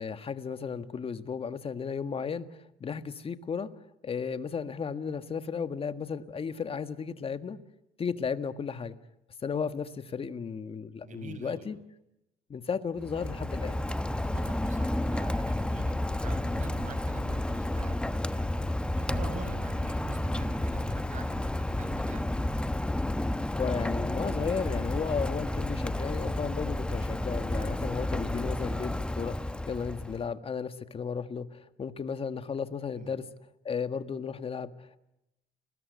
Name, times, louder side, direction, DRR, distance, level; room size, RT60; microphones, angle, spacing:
voice 1, 0.0-2.5 2.8-3.7 4.0-7.6 8.0-9.0 9.4-11.8 12.5-13.8 23.6-33.2 33.7-35.0, left 6 dB, 35° left, 11 dB, 1.8 m, -34 dB
voice 2, 11.0-11.7 14.1-18.5 19.0-22.3 33.0-33.2, right 5 dB, 45° right, 11 dB, 5.4 m, -45 dB
Rain, 13.0-30.3, left 1 dB, 5° left, 1.0 m, -31 dB
30.0 x 20.5 x 9.6 m, 0.87 s
cardioid pair, 110°, 17 cm